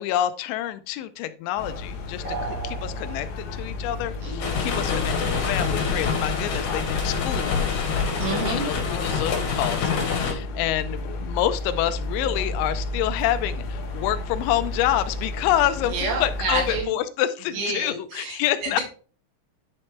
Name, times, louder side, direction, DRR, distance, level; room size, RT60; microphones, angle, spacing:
voice 1, 0.0-7.6 8.5-18.8, left 12 dB, 90° left, 11 dB, 3.0 m, -27 dB
sound 1, 1.6-16.8, left 2 dB, 70° left, 3.2 m, -33 dB
sound 2, 2.2-3.8, right 4 dB, 45° right, 2.7 m, -35 dB
voice 2, 4.2-4.7 8.2-8.7 15.8-16.9 17.5-18.8, right 3 dB, 75° right, 0 dB, 4.1 m, -29 dB
sound 3, 4.4-10.3, left 5 dB, 55° left, 2.4 m, -26 dB
10.5 x 4.4 x 3.2 m, 0.39 s
omnidirectional pair, 5.2 m